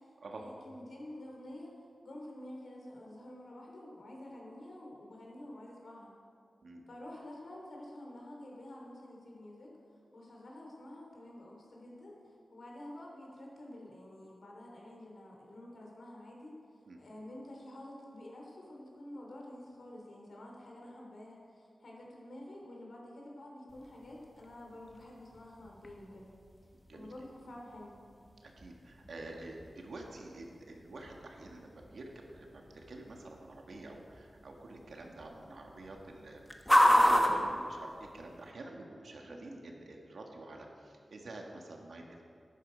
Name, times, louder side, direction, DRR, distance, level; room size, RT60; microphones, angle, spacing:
voice 1, 0.0-1.7 2.0-6.1 6.9-9.7 10.1-16.5 17.0-26.3 26.9-28.0 39.2-39.3, left 1 dB, 65° left, -2 dB, 3.1 m, -49 dB
sound 1, 23.7-38.5, equal, 5° left, 1.1 m, -34 dB
voice 2, 28.4-42.2, right 2 dB, 75° right, 1 dB, 1.6 m, -48 dB
12.0 x 10.5 x 5.1 m, 2.3 s
wide cardioid pair, 110°, 0 cm